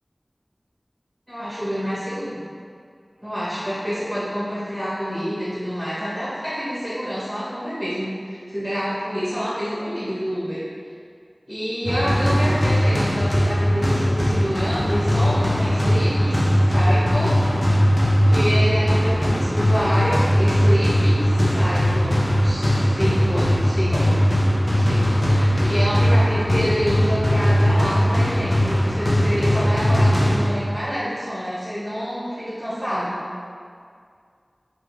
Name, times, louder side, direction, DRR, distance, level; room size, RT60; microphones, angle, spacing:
voice 1, 1.3-2.4 3.2-10.6 11.5-16.4 16.7-17.3 18.3-24.2 24.7-33.2, equal, 5° right, -11 dB, 1.1 m, -27 dB
sound 1, 11.8-30.8, equal, 50° left, 0.5 m, -19 dB
2.4 x 2.2 x 3.1 m, 2.2 s
wide cardioid pair, 40°, 0 cm